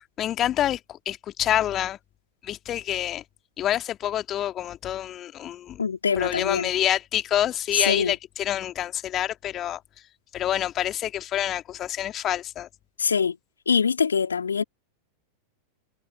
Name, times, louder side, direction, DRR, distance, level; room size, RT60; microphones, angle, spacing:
voice 1, 0.2-0.8 1.1-2.0 2.4-3.2 3.6-5.8 6.2-9.8 10.3-12.7, left 11 dB, 30° left, 2.1 m, -27 dB
voice 2, 5.8-6.7 7.7-8.2 13.0-13.4 13.6-14.6, left 6 dB, 70° left, 3.2 m, -24 dB
figure-of-eight pair, 90°, 0 cm